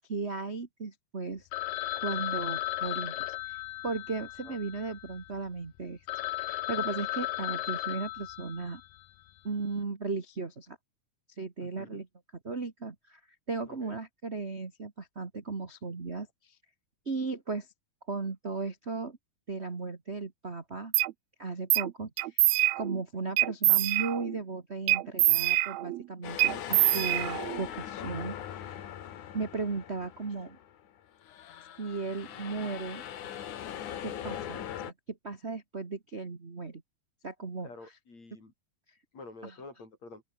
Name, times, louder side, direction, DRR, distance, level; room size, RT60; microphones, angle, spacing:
voice 1, 0.1-1.5 1.9-3.6 3.8-6.0 6.5-8.8 9.4-10.8 11.4-12.1 12.4-13.2 13.5-16.5 17.0-17.7 18.1-19.2 19.5-20.9 21.4-28.8 29.3-30.6 31.8-33.0 34.0-36.8 37.2-37.7 39.4-39.5, right 4 dB, 30° right, 1.4 m, -36 dB
Telephone, 1.5-5.3 5.8-5.9 6.1-9.0, left 15 dB, 80° left, 2.6 m, -35 dB
voice 2, 11.6-12.0 13.7-14.0 37.6-38.5 39.1-40.2, left 3 dB, 50° left, 8.7 m, -48 dB
sound 1, 20.9-21.1 21.7-21.9 22.2-23.0 23.4-24.4 24.9-26.0 26.4-27.6, right 17 dB, 80° right, 1.5 m, -25 dB
sound 2, 26.2-30.8 31.2-34.9, left 10 dB, 65° left, 3.0 m, -40 dB
open air
omnidirectional pair, 4.0 m